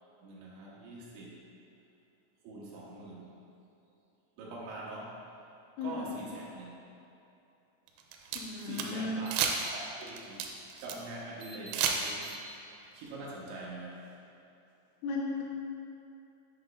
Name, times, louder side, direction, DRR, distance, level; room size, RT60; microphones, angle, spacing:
voice 1, 0.2-1.4 2.4-3.3 4.4-5.1 5.8-6.7 8.6-9.4 9.7-10.5 10.8-12.3 12.9-14.0, right 2 dB, 75° right, -5 dB, 3.0 m, -44 dB
voice 2, 5.8-6.3 8.3-9.2 15.0-15.4, left 3 dB, 80° left, -3 dB, 3.5 m, -36 dB
sound 1, 7.9-8.9 9.3-9.7 10.0-11.0 11.4-12.4, right 6 dB, 90° right, 3.3 m, -32 dB
9.8 x 7.0 x 2.5 m, 2.8 s
omnidirectional pair, 6.0 m